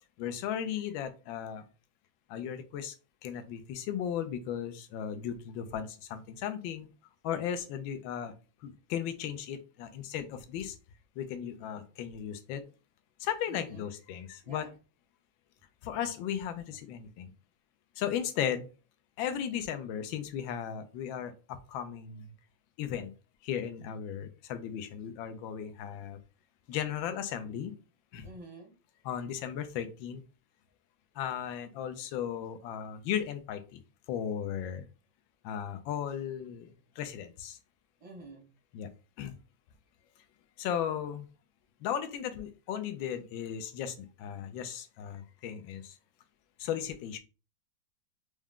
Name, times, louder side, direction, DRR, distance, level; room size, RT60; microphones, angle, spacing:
voice 1, 0.2-1.6 2.3-2.9 3.2-6.9 7.2-8.3 8.6-10.8 11.2-12.6 13.2-14.7 15.8-17.3 18.0-18.7 19.2-22.3 22.8-23.1 23.4-26.2 26.7-27.7 28.1-28.3 29.0-30.2 31.2-33.8 34.1-34.8 35.4-36.7 37.0-37.6 38.7-38.9 39.2-39.3 40.6-41.3 41.8-46.0 46.6-47.2, left 9 dB, 80° left, 9 dB, 1.3 m, -36 dB
voice 2, 13.5-13.9 14.4-14.7 28.2-28.7 38.0-38.5, right 2 dB, 30° right, 0 dB, 0.7 m, -49 dB
4.7 x 2.1 x 3.6 m, 0.33 s
omnidirectional pair, 2.1 m